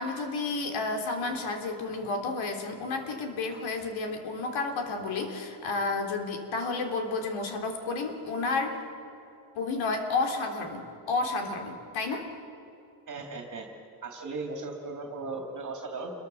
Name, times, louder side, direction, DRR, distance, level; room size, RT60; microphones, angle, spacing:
voice 1, 0.0-8.8 9.6-12.3, left 3 dB, 65° left, 4 dB, 3.6 m, -31 dB
voice 2, 13.1-13.7 14.0-16.1, right 3 dB, 35° right, 2 dB, 3.1 m, -37 dB
28.0 x 22.5 x 7.2 m, 2.7 s
cardioid pair, 145°, 49 cm